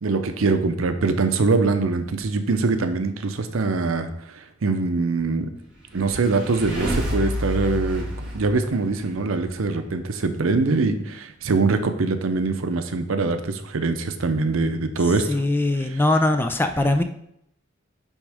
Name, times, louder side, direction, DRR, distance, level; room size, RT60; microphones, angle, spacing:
voice 1, 0.0-4.1 4.3-5.5 5.9-8.1 8.3-15.4 15.8-16.0, right 3 dB, 90° right, 8 dB, 0.6 m, -23 dB
sound 1, 5.8-9.4, equal, 5° right, 2.2 m, -29 dB
voice 2, 15.3-17.0, left 2 dB, 10° left, 7 dB, 0.4 m, -21 dB
9.8 x 3.6 x 3.5 m, 0.74 s
head